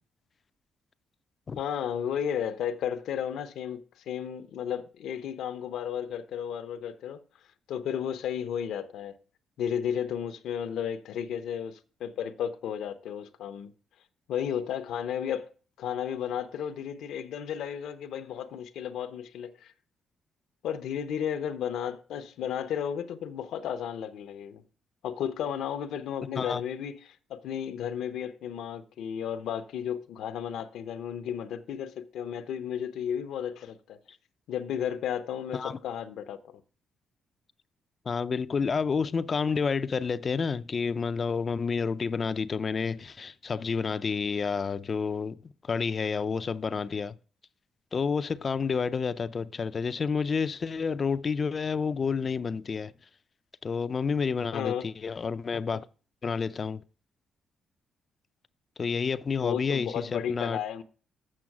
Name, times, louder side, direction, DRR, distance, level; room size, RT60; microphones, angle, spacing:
voice 1, 1.6-7.2 7.7-9.2 9.6-13.7 14.3-15.5 15.8-19.7 20.6-24.6 25.0-34.0 34.5-36.6 54.5-54.8 59.4-60.8, left 9 dB, 80° left, 0.8 m, -33 dB
voice 2, 38.1-47.2 47.9-52.9 53.6-55.8 56.2-56.8 58.8-60.8, left 5 dB, 40° left, 0.5 m, -30 dB
7.6 x 6.2 x 6.0 m
cardioid pair, 90°, 0 cm